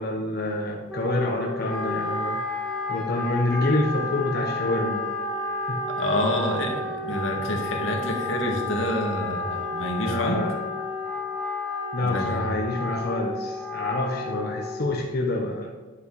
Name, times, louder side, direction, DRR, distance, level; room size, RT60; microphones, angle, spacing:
voice 1, 0.0-2.4 2.9-5.0 5.7-5.8 7.4-7.5 10.0-10.5 11.9-15.7, left 1 dB, 55° left, -1 dB, 1.2 m, -27 dB
Wind instrument woodwind instrument, 0.9-14.9, left 2 dB, 5° left, 1.8 m, -31 dB
voice 2, 6.0-10.4 12.0-12.4, left 1 dB, 85° left, 1 dB, 2.0 m, -27 dB
10.5 x 8.5 x 4.9 m, 1.3 s
head